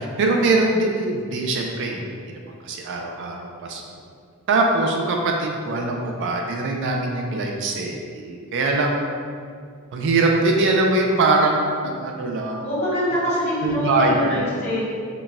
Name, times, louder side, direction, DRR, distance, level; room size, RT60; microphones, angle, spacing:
voice 1, 0.0-2.0 2.6-3.8 4.5-9.0 9.9-12.7 13.6-14.5, right 2 dB, 55° right, 1 dB, 0.3 m, -22 dB
voice 2, 12.6-14.9, equal, 30° left, -10 dB, 1.0 m, -24 dB
4.0 x 2.1 x 2.3 m, 2.1 s
head